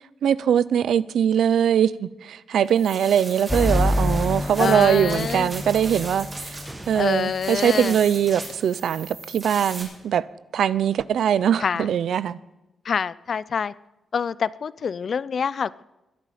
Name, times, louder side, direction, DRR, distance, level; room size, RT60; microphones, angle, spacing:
voice 1, 0.2-6.6 6.9-10.3 10.5-12.4, right 9 dB, 85° right, 0.5 m, -21 dB
sound 1, 2.7-9.8, right 2 dB, 30° right, 6.0 m, -38 dB
sound 2, 3.5-7.1, left 1 dB, 5° left, 1.1 m, -26 dB
voice 2, 4.6-5.5 6.9-8.0 11.6-11.9 12.8-13.7 14.1-15.8, left 6 dB, 50° left, 0.4 m, -26 dB
sound 3, 6.6-8.6, right 1 dB, 15° right, 1.7 m, -46 dB
22.0 x 11.0 x 5.1 m
wide cardioid pair, 145°, 0 cm